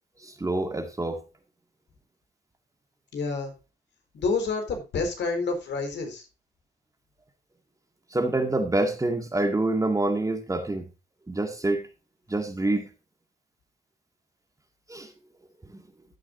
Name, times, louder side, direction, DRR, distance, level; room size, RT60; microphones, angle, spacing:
voice 1, 0.2-1.2 8.1-10.9 11.3-11.9 12.3-12.9 14.9-15.1, right 2 dB, 15° right, 2.0 m, -26 dB
voice 2, 3.1-3.5 4.1-6.2, left 4 dB, 65° left, 4.4 m, -28 dB
14.0 x 8.9 x 2.6 m
cardioid pair, 90°, 20 cm